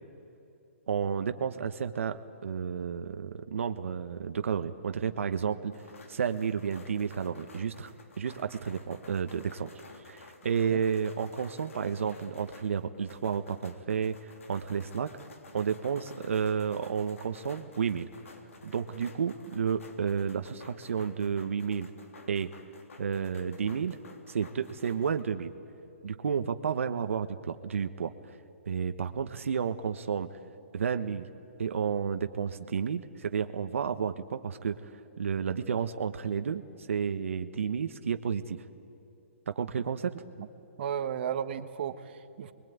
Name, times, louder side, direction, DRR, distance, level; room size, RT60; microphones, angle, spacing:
voice 1, 0.9-5.8 6.1-7.9 8.2-15.1 15.5-18.1 18.6-21.9 22.3-22.5 23.0-24.0 24.3-25.5 26.0-28.1 28.7-30.4 30.7-31.3 31.6-36.6 36.9-38.6 39.5-40.1, right 7 dB, 80° right, 8 dB, 1.2 m, -31 dB
sound 1, 5.7-25.2, left 3 dB, 90° left, 3.5 m, -53 dB
voice 2, 40.8-42.5, right 8 dB, 50° right, 8 dB, 1.4 m, -34 dB
26.0 x 22.5 x 9.4 m, 2.8 s
hypercardioid pair, 155°, 7 cm